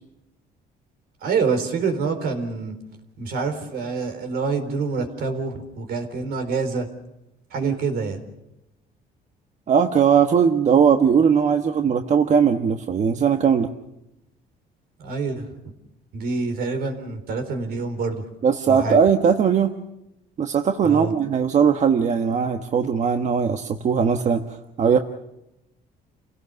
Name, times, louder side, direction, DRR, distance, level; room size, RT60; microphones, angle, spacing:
voice 1, 1.2-2.8 3.2-6.9 7.5-8.2 15.0-15.5 16.1-18.3 18.7-19.0 20.8-21.1, right 4 dB, 70° right, 8 dB, 4.2 m, -26 dB
voice 2, 9.7-13.7 18.4-19.7 20.4-25.0, right 7 dB, 45° right, 6 dB, 1.3 m, -19 dB
29.0 x 17.0 x 6.8 m, 0.89 s
cardioid pair, 110°, 17 cm